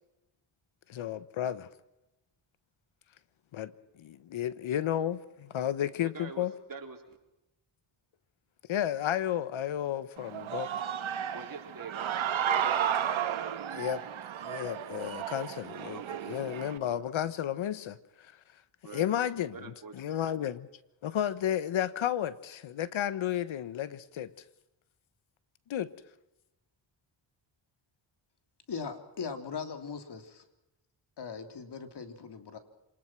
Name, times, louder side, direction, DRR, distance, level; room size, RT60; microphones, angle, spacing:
voice 1, 0.9-1.7 3.5-3.7 4.0-6.5 8.7-10.7 13.7-14.0 14.4-18.3 18.9-20.7 21.0-24.3 25.7-25.9, left 10 dB, 75° left, 1.4 m, -32 dB
voice 2, 6.1-7.2 11.3-12.1 15.8-16.3 18.8-19.3 19.5-20.2, right 5 dB, 45° right, 4.3 m, -45 dB
Human voice / Cheering, 10.2-16.8, right 9 dB, 75° right, 1.8 m, -33 dB
voice 3, 28.7-30.4 31.2-32.6, left 5 dB, 55° left, 3.3 m, -39 dB
27.5 x 20.0 x 6.1 m
cardioid pair, 75°, 48 cm